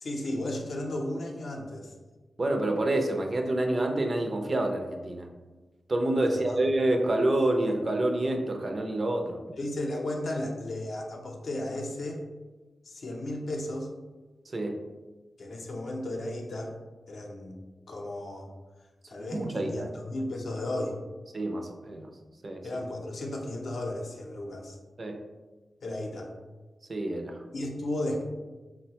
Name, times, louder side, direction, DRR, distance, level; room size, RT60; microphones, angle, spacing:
voice 1, 0.0-1.9 6.3-6.6 9.6-12.2 12.8-13.9 15.4-16.7 17.1-17.6 17.9-18.5 19.1-21.0 22.6-24.8 25.8-26.3 27.5-28.2, left 1 dB, 70° left, 1 dB, 0.5 m, -34 dB
voice 2, 2.4-5.3 5.9-9.4 14.5-14.8 19.2-19.9 21.3-22.1 22.4-22.6 25.0-25.2 26.9-27.4, right 1 dB, 45° right, 4 dB, 0.4 m, -28 dB
3.8 x 2.1 x 2.8 m, 1.2 s
cardioid pair, 70°, 0 cm